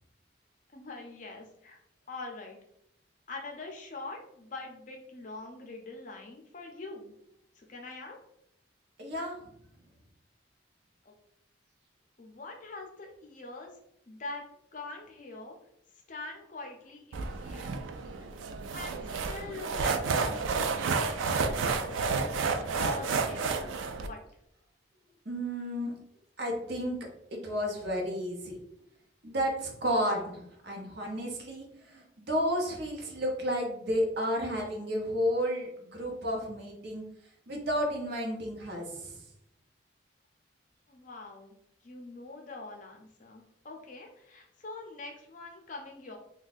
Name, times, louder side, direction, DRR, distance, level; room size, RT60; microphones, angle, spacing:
voice 1, 0.7-1.8 2.1-2.6 3.3-7.1 7.5-8.2 11.0-11.1 12.2-13.7 14.1-14.5 14.7-15.6 16.1-17.7 18.7-21.6 21.9-23.5 24.0-24.2 40.9-41.6 41.8-46.2, left 3 dB, 40° left, 2 dB, 0.5 m, -43 dB
voice 2, 9.0-9.4 25.2-25.9 26.4-28.6 29.2-37.0 37.5-39.2, equal, 55° right, 0 dB, 0.8 m, -32 dB
sound 1, 17.1-24.1, right 4 dB, 80° right, 0.3 m, -31 dB
2.6 x 2.3 x 4.0 m, 0.76 s
head